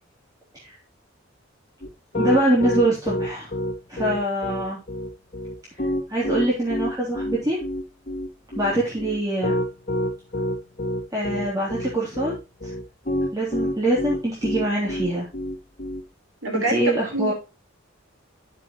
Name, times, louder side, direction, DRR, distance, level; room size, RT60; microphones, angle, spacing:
Piano, 1.8-16.0, left 1 dB, 40° left, 2.4 m, -27 dB
voice 1, 2.2-3.5 3.9-4.8 6.1-7.6 8.5-9.6 11.1-12.3 12.6-12.7 13.3-15.3 16.5-17.3, right 1 dB, 20° right, -7 dB, 3.3 m, -24 dB
voice 2, 16.4-17.3, right 1 dB, 80° right, 2 dB, 4.3 m, -26 dB
10.5 x 7.3 x 3.1 m, 0.28 s
head